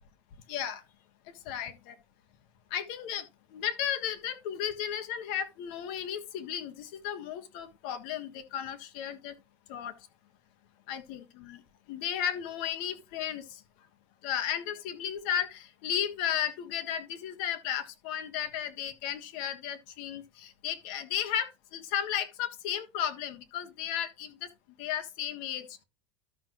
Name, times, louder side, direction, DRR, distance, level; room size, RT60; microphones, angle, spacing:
voice 1, 0.5-0.8 1.3-2.0 2.7-9.3 9.7-9.9 10.9-11.6 11.9-13.6 14.2-24.5 24.8-25.8, left 9 dB, 55° left, 1.5 m, -34 dB
13.0 x 6.1 x 3.0 m
supercardioid pair, 160°, 6 cm